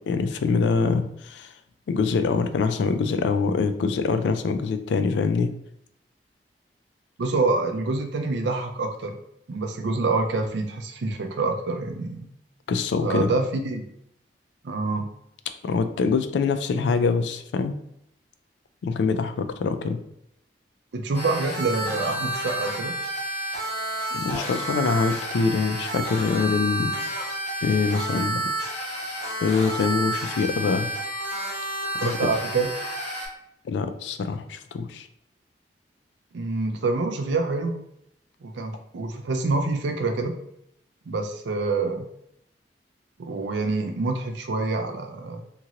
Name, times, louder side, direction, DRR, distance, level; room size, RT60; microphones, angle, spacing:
voice 1, 0.1-1.5 1.9-5.5 12.7-13.3 15.6-17.8 18.8-20.0 24.1-27.3 27.6-28.4 29.4-30.9 32.0-32.1 33.7-35.1, left 4 dB, 70° left, 9 dB, 0.3 m, -24 dB
voice 2, 7.2-9.1 9.5-12.3 13.0-13.8 14.6-15.1 20.9-23.0 32.0-32.7 36.3-37.8 38.4-40.3 41.1-42.1 43.2-45.4, right 3 dB, 75° right, 5 dB, 0.4 m, -26 dB
sound 1, 21.1-33.3, right 1 dB, 40° left, 0.9 m, -30 dB
2.9 x 2.5 x 2.8 m, 0.75 s
head